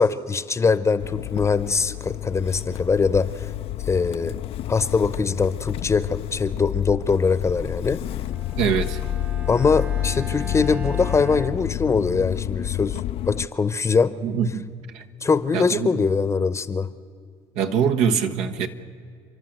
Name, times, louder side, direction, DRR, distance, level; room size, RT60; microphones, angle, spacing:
voice 1, 0.0-3.5 3.8-4.4 4.7-8.0 9.5-13.0 13.3-14.1 15.2-16.9, left 5 dB, 25° left, 15 dB, 0.8 m, -22 dB
Motor vehicle (road) / Engine starting, 1.0-13.5, left 13 dB, 65° left, 0.4 m, -30 dB
Bowed string instrument, 8.2-12.4, right 3 dB, 15° right, 0.9 m, -40 dB
voice 2, 8.6-9.0 14.2-14.7 14.9-15.0 15.5-16.0 17.5-18.7, right 7 dB, 85° right, 5 dB, 1.2 m, -23 dB
30.0 x 12.0 x 7.8 m, 2.2 s
supercardioid pair, 90°, 11 cm